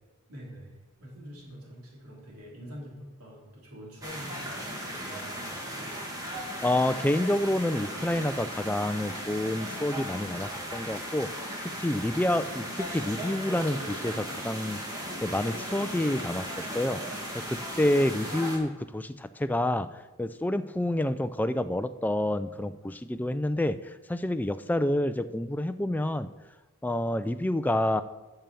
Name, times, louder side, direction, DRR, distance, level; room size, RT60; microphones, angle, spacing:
voice 1, 0.3-6.0, equal, 85° right, -3 dB, 3.2 m, -46 dB
sound 1, 4.0-18.6, equal, 15° right, 1.8 m, -37 dB
voice 2, 6.6-11.3 11.6-17.0 17.3-19.9 20.2-26.3 26.8-28.0, left 1 dB, 10° left, 11 dB, 0.3 m, -28 dB
9.1 x 6.9 x 6.8 m, 1.2 s
head